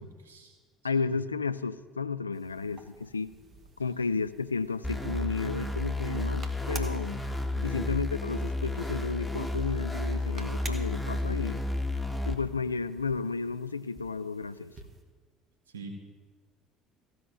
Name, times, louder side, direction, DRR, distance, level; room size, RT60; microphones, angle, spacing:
voice 1, 0.3-0.6 7.6-7.8 15.7-16.0, right 3 dB, 80° right, 4 dB, 1.5 m, -42 dB
voice 2, 0.8-3.4 3.8-7.2 7.6-11.6 12.3-14.7, left 4 dB, 90° left, 14 dB, 0.4 m, -32 dB
sound 1, 2.3-15.0, right 3 dB, 35° right, 1.7 m, -51 dB
sound 2, 4.8-12.3, left 2 dB, 5° left, 1.6 m, -32 dB
15.5 x 6.4 x 9.0 m, 1.4 s
figure-of-eight pair, 60°, 0 cm